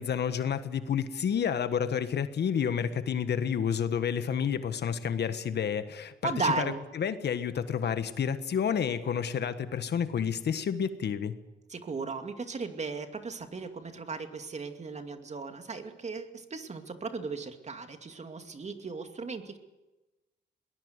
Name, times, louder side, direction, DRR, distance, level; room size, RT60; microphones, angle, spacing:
voice 1, 0.0-6.1 6.4-6.6 6.9-11.3, left 7 dB, 60° left, 11 dB, 1.4 m, -30 dB
voice 2, 6.2-6.9 11.7-19.6, right 4 dB, 35° right, 7 dB, 2.4 m, -36 dB
22.0 x 19.0 x 8.1 m, 1.1 s
cardioid pair, 90°, 19 cm